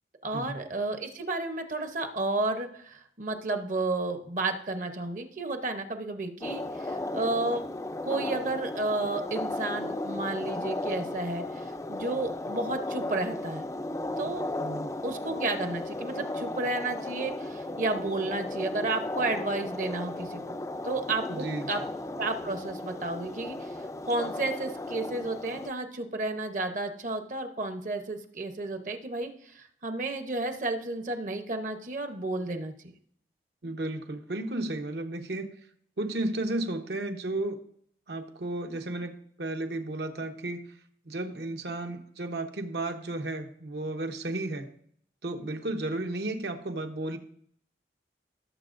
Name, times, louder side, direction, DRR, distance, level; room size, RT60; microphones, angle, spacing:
voice 1, 0.2-7.7 8.1-13.6 14.2-14.4 15.0-20.6 20.8-21.8 22.2-23.8 24.1-32.7, right 2 dB, 45° right, 6 dB, 0.8 m, -32 dB
sound 1, 6.4-25.7, left 2 dB, 20° left, 0.4 m, -35 dB
voice 2, 14.6-14.9 21.3-21.8 33.6-35.5 36.0-37.6 38.1-40.6 41.0-44.7 45.2-47.2, right 2 dB, 75° right, 5 dB, 1.0 m, -33 dB
17.0 x 6.9 x 2.5 m, 0.65 s
head